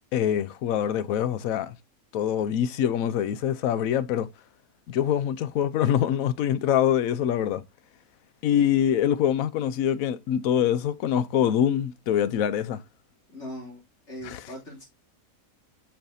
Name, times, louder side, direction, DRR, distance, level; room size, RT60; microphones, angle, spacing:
voice 1, 0.1-1.8 2.1-4.3 4.9-7.6 8.4-12.8 14.2-14.4, left 10 dB, 70° left, 1.1 m, -24 dB
voice 2, 13.3-13.8 14.1-14.8, equal, 50° left, 3.4 m, -39 dB
8.6 x 5.8 x 2.7 m
omnidirectional pair, 1.6 m